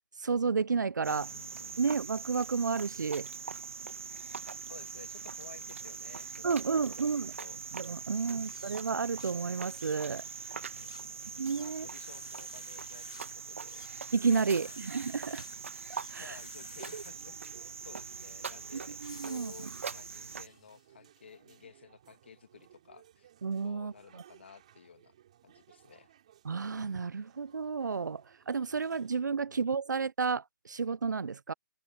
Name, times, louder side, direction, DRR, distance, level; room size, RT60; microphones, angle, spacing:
voice 1, 0.2-1.3 1.8-3.3 6.4-7.3 7.7-10.2 11.4-11.9 14.1-15.4 16.1-16.4 16.9-17.0 19.0-19.7 23.4-24.2 26.4-31.5, right 5 dB, 70° right, 0.5 m, -31 dB
Cricket, 1.0-20.5, right 5 dB, 40° right, 2.0 m, -42 dB
voice 2, 1.1-1.8 4.7-7.6 8.1-8.8 10.7-13.9 14.4-14.8 16.2-23.3 23.6-25.1 25.4-26.1 29.5-29.6, left 6 dB, 35° left, 2.2 m, -54 dB
sound 1, 8.4-20.9, left 10 dB, 15° left, 0.7 m, -57 dB
sound 2, 16.7-29.2, right 11 dB, 20° right, 4.8 m, -61 dB
hypercardioid pair, 180°, 10 cm